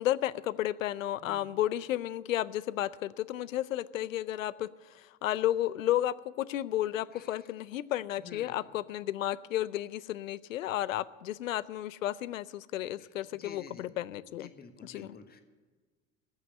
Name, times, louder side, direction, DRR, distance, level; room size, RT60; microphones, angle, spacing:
voice 1, 0.0-4.7 4.9-14.5 14.8-15.1, left 13 dB, 80° left, 0.6 m, -32 dB
voice 2, 1.2-1.5 7.1-7.5 8.2-8.6 13.0-14.0 14.3-15.4, left 5 dB, 25° left, 1.5 m, -50 dB
14.0 x 6.7 x 9.3 m
figure-of-eight pair, 75°, 39 cm